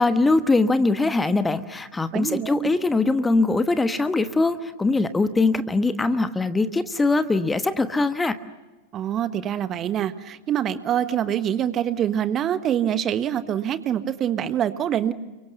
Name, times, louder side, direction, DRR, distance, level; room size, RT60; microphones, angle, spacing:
voice 1, 0.0-8.4, left 3 dB, 10° left, 11 dB, 1.2 m, -22 dB
voice 2, 2.1-2.7 8.9-15.1, right 10 dB, 30° right, 12 dB, 1.4 m, -25 dB
30.0 x 24.5 x 6.9 m, 1.1 s
figure-of-eight pair, 90°, 0 cm